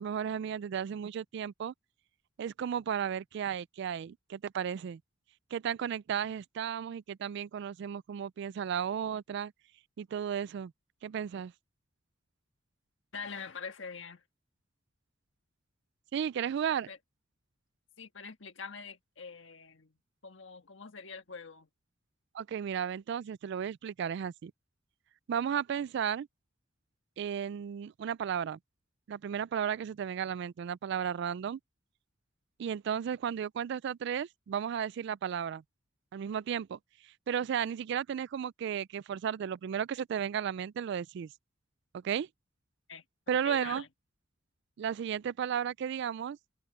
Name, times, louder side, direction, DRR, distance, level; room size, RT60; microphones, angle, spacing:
voice 1, 0.0-1.7 2.4-5.0 5.5-9.5 10.0-10.7 11.0-11.5 16.1-16.9 22.3-24.5 25.3-26.3 27.2-28.6 29.1-31.6 32.6-35.6 36.1-36.8 37.3-41.3 41.9-42.3 43.3-43.8 44.8-46.4, right 8 dB, 60° right, 0.3 m, -34 dB
voice 2, 13.1-14.2 16.9-17.0 18.0-20.0 20.2-21.7 42.9-43.0 43.4-43.9, left 5 dB, 70° left, 1.6 m, -44 dB
open air
head